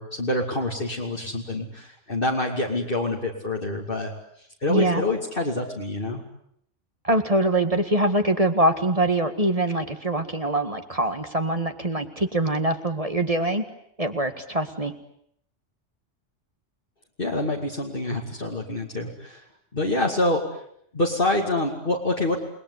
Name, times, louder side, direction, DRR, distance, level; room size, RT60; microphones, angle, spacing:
voice 1, 0.0-4.1 4.6-6.2 17.2-19.4 19.7-20.6 20.9-22.4, left 2 dB, 45° left, -1 dB, 2.8 m, -26 dB
voice 2, 4.7-5.0 7.0-13.6 14.0-14.9, right 1 dB, 30° right, 8 dB, 1.9 m, -23 dB
29.0 x 20.5 x 9.7 m, 0.71 s
omnidirectional pair, 1.2 m